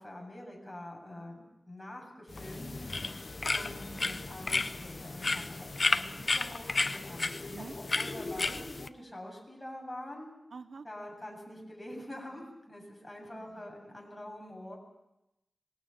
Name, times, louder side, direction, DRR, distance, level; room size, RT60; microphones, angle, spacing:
voice 1, 0.0-2.9 3.4-10.3 10.8-14.8, left 1 dB, 10° left, -1 dB, 7.4 m, -45 dB
sound 1, 2.3-8.9, left 3 dB, 40° left, 0.8 m, -33 dB
voice 2, 10.5-10.9 13.4-13.7, right 4 dB, 75° right, 11 dB, 0.9 m, -47 dB
26.0 x 21.5 x 5.9 m, 0.89 s
wide cardioid pair, 110°, 0 cm